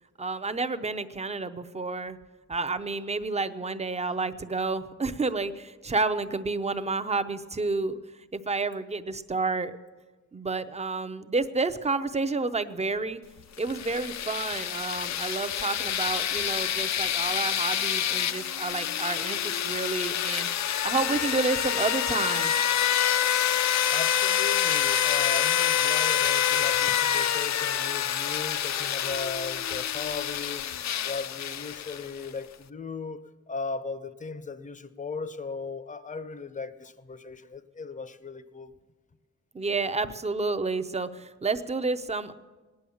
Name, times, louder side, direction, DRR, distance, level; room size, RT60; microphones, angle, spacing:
voice 1, 0.2-2.2 2.5-8.0 8.3-9.7 10.3-13.2 13.6-22.5 39.5-42.3, right 3 dB, 25° right, 0.6 m, -30 dB
sound 1, 13.6-32.3, left 10 dB, 65° left, 0.5 m, -27 dB
voice 2, 23.9-33.2 33.5-38.7, left 4 dB, 25° left, 0.6 m, -37 dB
19.0 x 10.0 x 7.0 m
wide cardioid pair, 155°, 29 cm